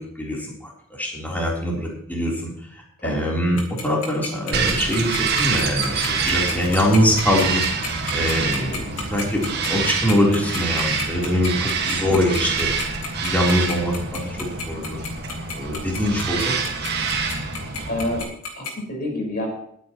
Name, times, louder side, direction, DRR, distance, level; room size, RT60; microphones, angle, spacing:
voice 1, 0.0-7.6 8.1-12.7 13.2-15.0 15.5-16.6, equal, 10° left, -3 dB, 3.6 m, -23 dB
Tick-tock, 3.6-18.7, left 6 dB, 80° left, 3.1 m, -31 dB
Bird vocalization bird call bird song, 4.5-18.2, right 5 dB, 50° right, 1.8 m, -26 dB
voice 2, 17.9-18.3 18.5-19.5, left 1 dB, 45° left, 0 dB, 4.9 m, -28 dB
21.5 x 9.4 x 3.1 m, 0.69 s
head